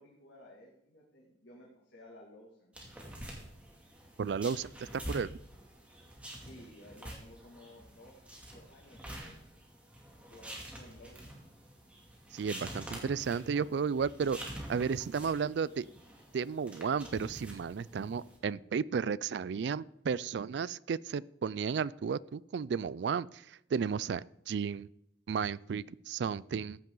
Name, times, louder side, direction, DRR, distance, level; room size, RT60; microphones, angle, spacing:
voice 1, 0.0-2.8 6.4-8.2 8.5-9.6 10.3-11.4, left 1 dB, 80° left, -3 dB, 2.3 m, -55 dB
sound 1, 2.7-18.4, right 1 dB, 5° right, 2.4 m, -47 dB
voice 2, 4.2-5.3 12.3-14.4 14.7-15.9 16.3-24.9 25.3-26.8, right 6 dB, 65° right, 21 dB, 0.3 m, -33 dB
15.0 x 10.0 x 3.9 m, 0.77 s
head